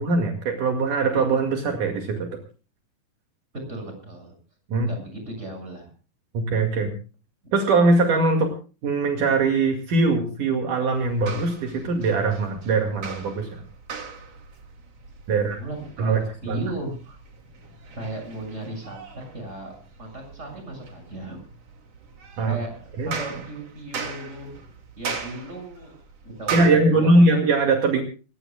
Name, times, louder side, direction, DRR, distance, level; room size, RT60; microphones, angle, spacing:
voice 1, 0.0-2.3 4.7-4.9 6.3-6.9 7.5-8.5 8.8-13.6 15.3-15.6 16.0-16.6 22.4-22.6 23.0-23.1 26.5-28.0, right 3 dB, 70° right, 3 dB, 3.6 m, -21 dB
voice 2, 3.7-4.3 4.8-5.9 15.3-17.2 17.9-19.0 19.3-19.7 20.0-21.4 22.4-24.5 25.0-25.9 26.2-27.3, right 2 dB, 20° right, 3 dB, 7.1 m, -36 dB
sound 1, 10.9-26.7, right 5 dB, 50° right, 3.4 m, -38 dB
28.0 x 16.5 x 2.3 m, 0.36 s
omnidirectional pair, 4.0 m